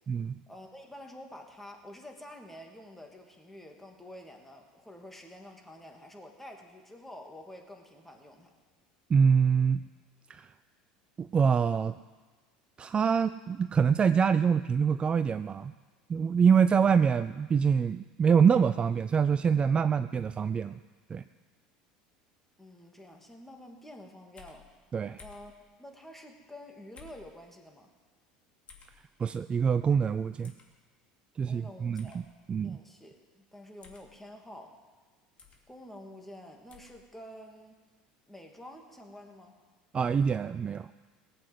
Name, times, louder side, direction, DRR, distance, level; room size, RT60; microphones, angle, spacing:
voice 1, 0.5-8.5 22.6-24.7 25.2-25.5 25.8-27.9 31.4-32.2 32.6-34.8 35.7-37.8 38.2-39.5, left 1 dB, 5° left, 2 dB, 2.7 m, -48 dB
voice 2, 9.1-9.8 10.3-10.5 11.2-12.0 12.8-15.7 16.1-20.8 21.1-21.2 24.9-25.2 29.2-30.5 31.4-32.2 32.5-32.8 39.9-40.9, right 6 dB, 30° right, 12 dB, 0.4 m, -25 dB
sound 1, 24.4-24.6 25.2-25.5 27.0-27.3 28.7-28.9 30.4-30.7 32.0-32.2 33.8-34.1 35.4-35.6 36.7-37.0, left 6 dB, 35° left, 2.9 m, -53 dB
18.0 x 8.4 x 8.0 m, 1.3 s
hypercardioid pair, 80°, 4 cm